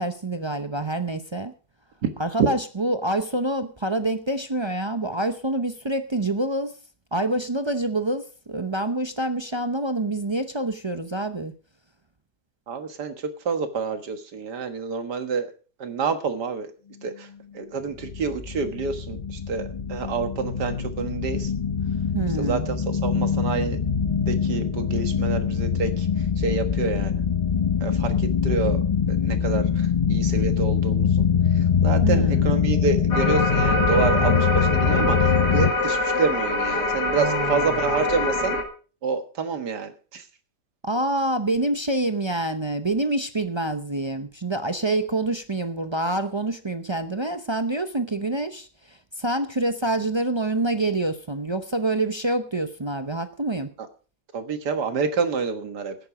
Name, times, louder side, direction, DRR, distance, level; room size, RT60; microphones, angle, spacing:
voice 1, 0.0-1.5 2.2-6.7 7.1-11.5 22.1-22.6 32.0-32.5 37.1-37.8 40.8-53.7, right 2 dB, 45° right, 8 dB, 0.3 m, -26 dB
voice 2, 12.7-15.5 15.8-16.7 17.0-17.3 17.5-21.5 22.4-22.8 23.0-23.8 24.2-26.1 26.4-27.2 27.8-31.3 31.5-38.6 39.0-40.2 54.3-56.0, right 5 dB, 80° right, 8 dB, 2.1 m, -28 dB
sound 1, 18.0-35.7, left 7 dB, 55° left, 0.4 m, -23 dB
sound 2, 33.1-38.6, left 2 dB, 80° left, 2.7 m, -24 dB
14.0 x 10.0 x 4.9 m, 0.38 s
omnidirectional pair, 1.8 m